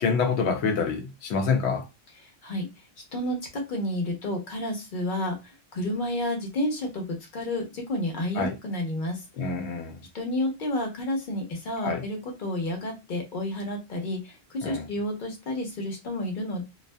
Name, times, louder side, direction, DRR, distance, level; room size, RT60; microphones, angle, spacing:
voice 1, 0.0-1.9 8.4-8.6 9.4-10.1 11.8-12.0 14.6-14.9, left 5 dB, 90° left, 0.9 m, -27 dB
voice 2, 2.2-2.7 3.1-9.2 10.1-16.6, left 1 dB, 50° left, 0.9 m, -30 dB
2.6 x 2.4 x 2.2 m
omnidirectional pair, 1.1 m